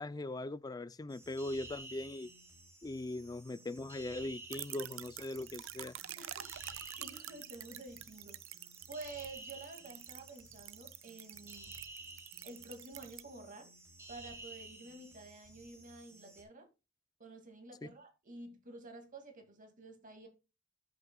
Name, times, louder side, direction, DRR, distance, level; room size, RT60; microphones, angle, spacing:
voice 1, 0.0-2.3 2.8-5.9 17.8-17.9, left 2 dB, 20° left, 0.4 m, -40 dB
sound 1, 1.1-16.4, right 2 dB, 15° right, 2.9 m, -53 dB
sound 2, 4.5-13.2, right 14 dB, 80° right, 0.5 m, -48 dB
voice 2, 6.2-8.6 8.9-11.7 12.4-13.7 14.1-16.7 17.2-20.3, right 2 dB, 45° right, 2.2 m, -50 dB
13.5 x 6.7 x 2.3 m
head